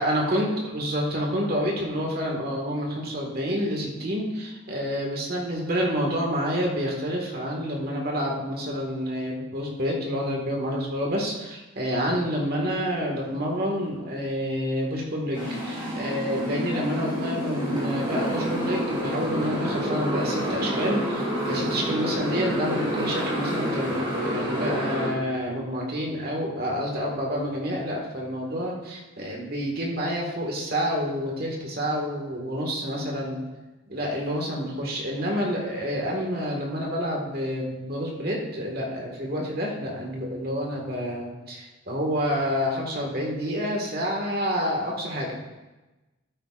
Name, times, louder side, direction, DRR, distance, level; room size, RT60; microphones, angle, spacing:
voice 1, 0.0-33.4 33.9-45.4, equal, 45° right, -1 dB, 1.8 m, -28 dB
Motorcycle, 15.3-25.1, equal, 25° right, 3.5 m, -28 dB
13.0 x 8.7 x 2.5 m, 1.1 s
head